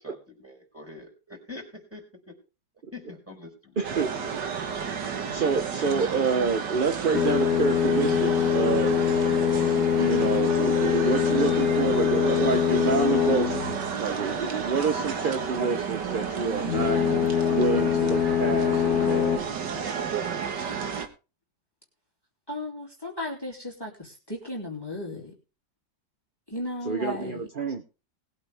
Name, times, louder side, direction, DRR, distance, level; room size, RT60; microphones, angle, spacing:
voice 1, 0.0-2.4 2.9-3.9, left 2 dB, 5° right, 0 dB, 5.0 m, -44 dB
voice 2, 3.8-4.1 5.3-9.0 10.0-17.0 17.5-19.4 26.9-27.8, right 5 dB, 40° right, 6 dB, 0.8 m, -28 dB
sound 1, 3.8-21.1, right 6 dB, 70° right, 2.1 m, -32 dB
sound 2, 7.1-13.9 16.6-19.4, left 9 dB, 60° left, 1.3 m, -24 dB
voice 3, 22.5-25.3 26.5-27.5, left 1 dB, 10° left, -1 dB, 2.9 m, -35 dB
20.0 x 8.6 x 3.5 m, 0.33 s
omnidirectional pair, 1.9 m